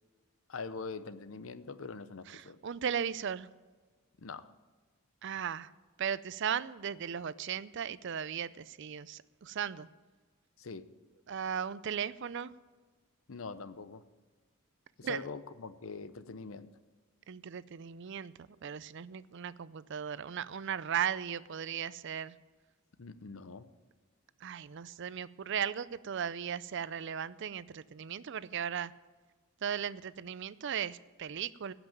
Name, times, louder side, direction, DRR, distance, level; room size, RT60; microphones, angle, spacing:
voice 1, 0.5-2.6 4.2-4.5 10.6-10.9 13.3-14.0 15.0-16.7 23.0-23.7, left 4 dB, 75° left, 13 dB, 0.7 m, -43 dB
voice 2, 2.3-3.5 5.2-5.7 6.0-9.9 11.3-12.5 15.0-15.2 17.3-18.3 18.6-22.3 24.4-28.9 29.6-31.7, right 8 dB, 60° right, 17 dB, 0.4 m, -37 dB
15.5 x 6.0 x 9.0 m, 1.4 s
head